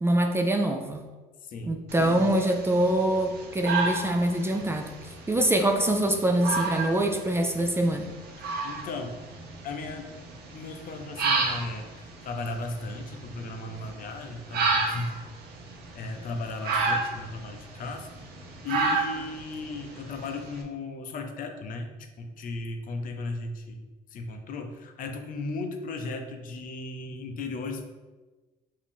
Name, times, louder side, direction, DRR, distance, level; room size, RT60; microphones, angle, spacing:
voice 1, 0.0-1.1 1.7-4.9 5.3-8.1, right 1 dB, 15° right, 4 dB, 0.4 m, -24 dB
voice 2, 1.4-2.3 8.4-9.2 9.6-15.2 15.9-18.1 18.6-27.8, left 3 dB, 55° left, 5 dB, 0.6 m, -36 dB
sound 1, 1.9-20.6, right 3 dB, 70° right, 0.8 m, -32 dB
5.0 x 2.8 x 3.4 m, 1.3 s
cardioid pair, 110°, 17 cm